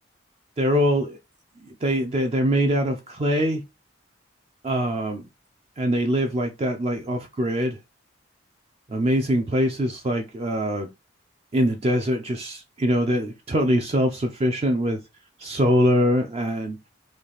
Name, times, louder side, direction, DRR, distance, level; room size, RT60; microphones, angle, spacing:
voice 1, 0.6-1.2 1.8-3.6 4.6-5.2 5.8-7.8 8.9-10.9 11.5-15.0 15.4-16.8, equal, 30° right, 0.4 m, -23 dB
3.2 x 2.4 x 3.9 m
head